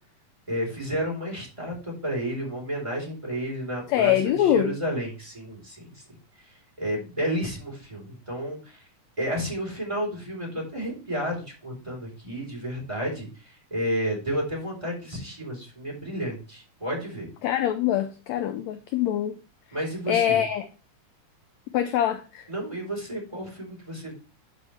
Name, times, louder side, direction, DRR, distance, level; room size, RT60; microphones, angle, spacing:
voice 1, 0.5-6.0 6.8-8.8 9.2-17.3 19.7-20.4 22.5-24.1, equal, 10° right, 3.7 m, -31 dB
voice 2, 3.9-4.7 17.4-19.4 20.1-20.7 21.7-22.5, left 11 dB, 75° left, 1.7 m, -24 dB
11.0 x 5.6 x 3.2 m
omnidirectional pair, 3.7 m